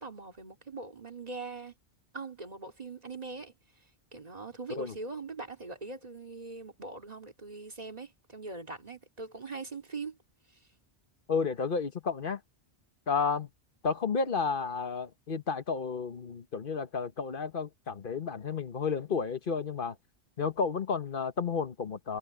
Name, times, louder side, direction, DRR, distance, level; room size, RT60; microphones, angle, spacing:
voice 1, 0.0-1.7 2.1-3.5 4.1-10.2, right 3 dB, 35° right, 2.4 m, -42 dB
voice 2, 11.3-12.4 13.1-13.5 13.8-20.0 20.4-22.2, left 5 dB, 50° left, 1.3 m, -32 dB
omnidirectional pair, 1.2 m